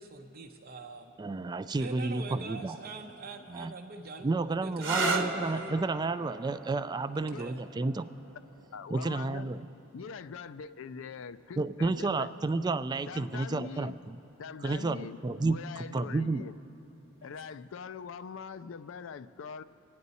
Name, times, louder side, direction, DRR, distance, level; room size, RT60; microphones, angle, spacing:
voice 1, 0.0-1.1 1.8-5.7 7.4-7.6, right 3 dB, 45° right, 2 dB, 0.7 m, -44 dB
voice 2, 1.2-2.8 3.5-3.7 4.2-8.1 8.9-9.6 11.6-14.2 14.6-15.6 15.9-16.4, right 3 dB, 20° right, 13 dB, 0.3 m, -31 dB
sound 1, 4.7-12.2 13.2-13.7 17.2-17.6, right 3 dB, 70° right, 1.0 m, -38 dB
voice 3, 8.7-9.5 9.9-12.3 13.1-14.0 14.4-15.2 15.4-16.6 17.2-19.6, left 6 dB, 70° left, 13 dB, 0.4 m, -42 dB
25.0 x 9.7 x 4.1 m, 2.9 s
head